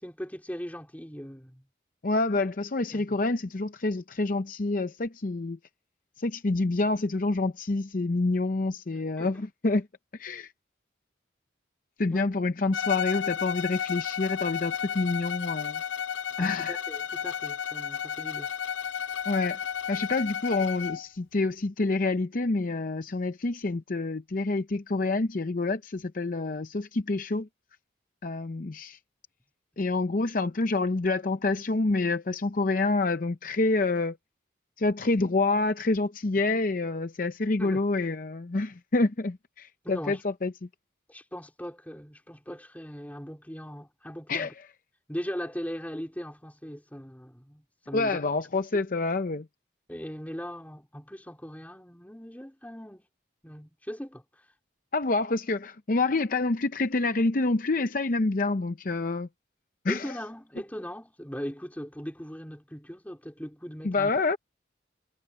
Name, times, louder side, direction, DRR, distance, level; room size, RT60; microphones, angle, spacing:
voice 1, 0.0-1.6 2.9-3.2 9.2-9.4 12.1-12.3 16.4-18.5 37.6-37.8 39.8-40.2 41.1-44.5 45.1-48.2 49.9-53.1 53.4-54.2 59.9-64.1, equal, 10° left, 3.8 m, -39 dB
voice 2, 2.0-5.6 6.2-9.9 10.1-10.5 12.0-15.8 16.4-16.8 19.3-19.6 19.9-27.5 28.2-29.0 29.8-34.2 34.8-40.5 44.3-44.7 47.9-49.5 54.9-59.3 59.8-60.2 63.8-64.4, left 3 dB, 45° left, 0.6 m, -27 dB
Bowed string instrument, 12.7-21.1, left 8 dB, 85° left, 0.6 m, -32 dB
head